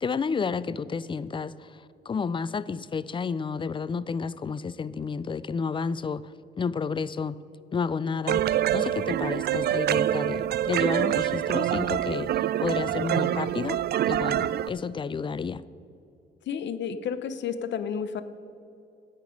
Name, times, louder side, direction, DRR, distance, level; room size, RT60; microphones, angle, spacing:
voice 1, 0.0-1.7 2.1-6.3 6.6-7.4 7.7-8.4 8.7-13.8 14.0-15.6, left 5 dB, 25° left, 18 dB, 0.4 m, -31 dB
sound 1, 8.3-14.7, right 11 dB, 55° right, 0.4 m, -26 dB
voice 2, 16.5-18.2, left 7 dB, 65° left, 12 dB, 0.8 m, -31 dB
13.5 x 9.1 x 5.3 m, 2.7 s
cardioid pair, 90°, 20 cm